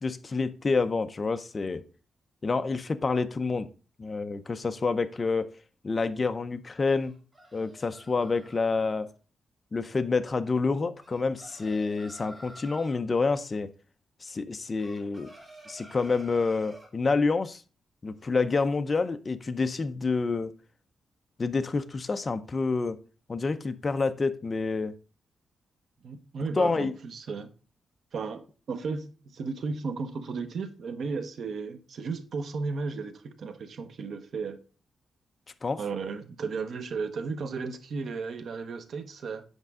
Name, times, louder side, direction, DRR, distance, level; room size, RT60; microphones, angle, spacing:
voice 1, 0.0-1.8 2.4-3.7 4.0-5.5 5.8-7.1 7.5-9.1 9.7-13.7 14.2-15.3 15.7-17.6 18.0-20.5 21.4-23.0 23.3-24.9 26.6-26.9 35.6-35.8, left 4 dB, 25° left, 0.5 m, -28 dB
sound 1, 7.0-9.0 11.0-13.0 14.8-16.9, right 1 dB, 15° right, 1.6 m, -50 dB
voice 2, 26.0-27.5 28.1-34.6 35.8-39.4, right 4 dB, 60° right, 0.8 m, -34 dB
8.1 x 5.1 x 3.6 m
wide cardioid pair, 150°, 0 cm